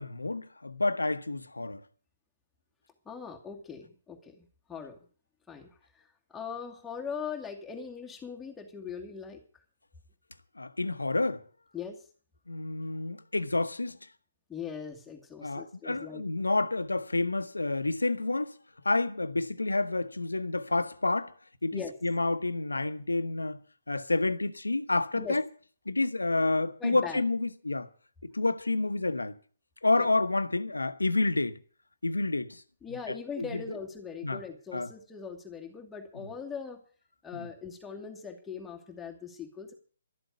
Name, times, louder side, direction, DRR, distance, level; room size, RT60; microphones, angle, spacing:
voice 1, 0.0-1.8 10.6-11.5 12.5-14.1 15.4-18.6 18.8-21.3 21.6-23.6 23.9-25.4 25.9-27.9 28.2-29.4 29.8-31.6 32.0-32.6 33.1-33.8 34.2-34.4 34.7-34.9 37.3-37.5, left 2 dB, 85° left, 1.0 m, -29 dB
voice 2, 3.1-5.0 5.5-5.7 5.9-6.0 6.3-9.4 11.7-12.0 14.5-16.2 21.7-22.0 25.1-25.4 26.8-27.2 30.0-30.1 32.8-36.8 37.2-39.7, left 6 dB, 10° left, 2.4 m, -40 dB
13.0 x 7.8 x 9.2 m
figure-of-eight pair, 140°, 0 cm